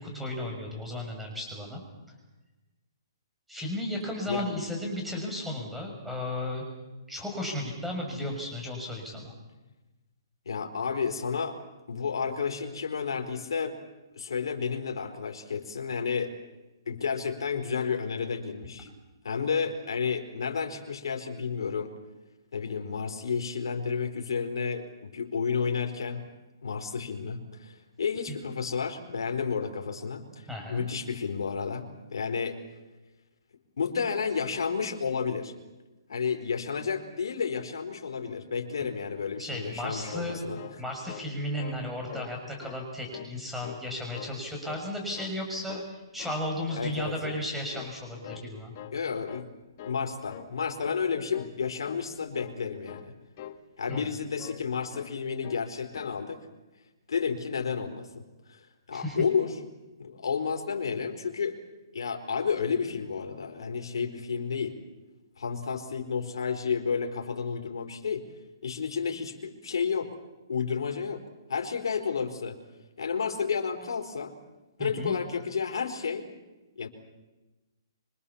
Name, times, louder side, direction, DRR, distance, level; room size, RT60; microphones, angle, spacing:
voice 1, 0.0-1.8 3.5-6.7 7.1-9.3 30.5-30.8 39.4-40.4 40.8-48.7 53.9-54.1 58.9-59.2 74.8-75.1, left 1 dB, ahead, 1 dB, 6.5 m, -34 dB
voice 2, 10.4-11.6 11.9-13.8 14.2-16.3 16.9-18.9 19.2-21.9 22.5-26.2 26.6-32.6 33.8-35.5 36.1-40.6 46.8-47.1 48.9-49.5 49.8-53.1 53.8-56.4 57.1-59.6 60.0-61.6 61.9-64.8 65.4-68.3 68.6-70.2 70.5-71.2 71.5-72.6 73.0-74.4 74.8-76.3 76.8-76.9, left 6 dB, 75° left, 4 dB, 4.5 m, -31 dB
sound 1, 40.0-41.3 41.6-41.8 42.1-42.8 43.1-43.9 44.1-44.9 45.2-45.4 45.7-46.4 46.7-46.9 47.2-47.5 47.7-48.5 48.7-49.0 49.3-49.5 49.8-50.0 50.3-50.5 50.8-51.0 51.3-51.6 51.8-52.1 52.3-52.6 52.9-53.1 53.4-53.6 53.9-54.7 54.9-55.1 55.4-55.7 55.9-56.2, left 11 dB, 40° left, 1.7 m, -44 dB
26.0 x 25.5 x 7.3 m, 1.1 s
hypercardioid pair, 160°, 2 cm